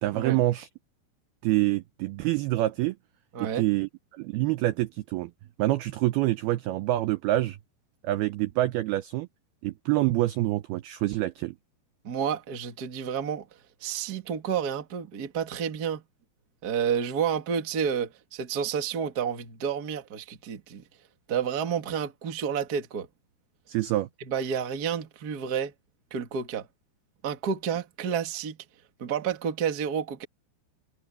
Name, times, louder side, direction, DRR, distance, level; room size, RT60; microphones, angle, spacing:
voice 1, 0.0-0.7 1.4-3.0 3.4-3.9 4.2-5.3 5.6-7.6 8.0-9.3 9.6-11.6 23.7-24.1, right 16 dB, 90° right, 2.2 m, -26 dB
voice 2, 3.3-3.6 12.0-13.4 13.8-16.0 16.6-20.8 21.3-23.1 24.2-25.7 26.1-26.7 27.2-28.6 29.0-30.2, right 7 dB, 55° right, 1.0 m, -30 dB
omnidirectional pair, 5.4 m